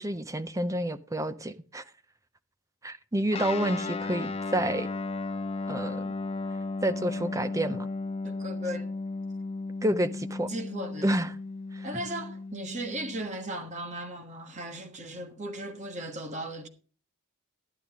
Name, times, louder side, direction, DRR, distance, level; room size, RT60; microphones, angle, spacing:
voice 1, 0.0-1.8 2.8-4.9 5.7-6.1 6.8-7.9 9.8-10.5 11.0-11.3 11.7-11.9, right 1 dB, 15° right, 0.6 m, -29 dB
Guitar, 3.3-13.2, left 3 dB, 30° left, 0.6 m, -35 dB
voice 2, 8.2-8.9 10.5-11.2 11.8-16.7, right 1 dB, 35° right, 1.3 m, -37 dB
12.0 x 10.5 x 3.6 m
head